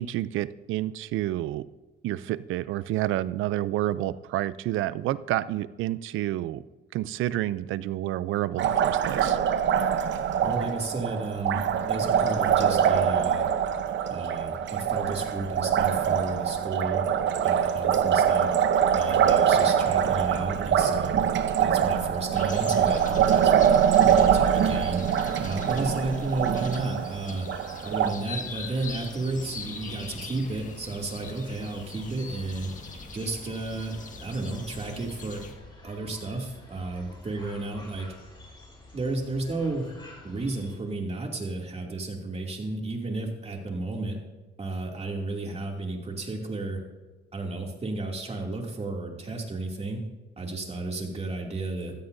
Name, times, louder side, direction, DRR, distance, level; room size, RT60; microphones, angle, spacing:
voice 1, 0.0-1.6 2.0-6.6 6.9-9.4, right 14 dB, 85° right, 17 dB, 0.5 m, -29 dB
Liquid, 8.6-28.1, right 8 dB, 70° right, 0.9 m, -24 dB
voice 2, 10.4-11.6 11.9-13.5 14.1-17.0 17.4-18.5 18.9-21.2 21.6-25.0 25.4-27.5 27.8-32.7 33.1-35.4 35.8-38.1 38.9-39.9 40.2-44.2 44.6-46.8 47.3-50.0 50.4-51.9, right 2 dB, 30° right, 1 dB, 2.6 m, -32 dB
sound 1, 22.3-35.5, left 4 dB, 40° left, 1.8 m, -42 dB
sound 2, 28.5-40.8, left 1 dB, 25° left, 4.7 m, -50 dB
16.0 x 13.0 x 2.7 m, 1.2 s
cardioid pair, 90°, 20 cm